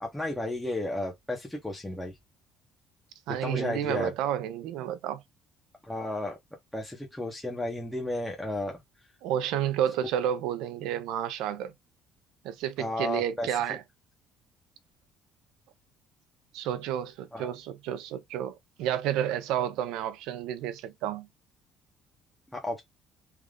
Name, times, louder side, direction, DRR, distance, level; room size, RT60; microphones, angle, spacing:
voice 1, 0.0-2.1 3.4-4.1 5.8-6.4 6.7-8.8 12.8-13.5 17.3-17.5 22.5-22.8, left 1 dB, 5° left, 0.7 m, -33 dB
voice 2, 3.3-5.2 9.2-11.7 12.4-13.8 16.5-21.3, right 10 dB, 80° right, 0.6 m, -31 dB
3.4 x 2.5 x 3.6 m
cardioid pair, 170°, 0 cm